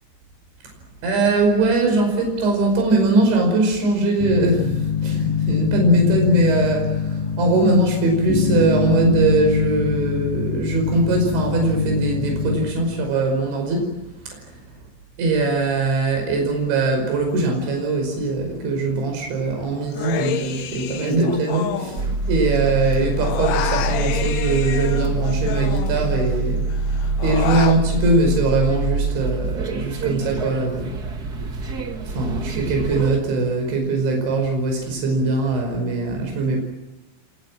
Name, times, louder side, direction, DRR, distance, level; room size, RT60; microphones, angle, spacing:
voice 1, 1.0-13.9 14.2-14.5 15.2-26.7 27.2-30.9 32.0-36.6, right 2 dB, 80° right, 3 dB, 7.6 m, -21 dB
sound 1, 4.2-12.7, left 6 dB, 50° left, 6.8 m, -24 dB
Human voice, 19.9-22.6 22.8-26.3 26.7-27.8, left 10 dB, 65° left, 2.2 m, -29 dB
sound 2, 22.0-33.2, right 3 dB, 60° right, 1.0 m, -25 dB
29.0 x 23.5 x 7.5 m, 1.0 s
omnidirectional pair, 5.2 m